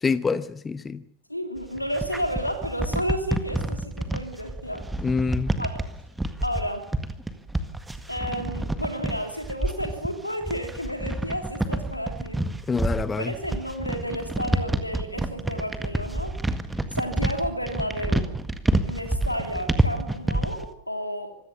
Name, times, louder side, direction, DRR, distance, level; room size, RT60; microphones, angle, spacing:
voice 1, 0.0-1.0 5.0-5.5 12.7-13.3, left 4 dB, 15° left, 0.9 m, -26 dB
voice 2, 1.3-4.9 5.6-5.8 6.4-6.9 8.1-12.4 13.2-16.4 16.9-18.3 18.9-21.5, equal, 85° left, 3.2 m, -31 dB
sound 1, 1.6-20.7, right 1 dB, 5° right, 1.8 m, -28 dB
25.5 x 16.0 x 6.9 m
figure-of-eight pair, 90°, 0 cm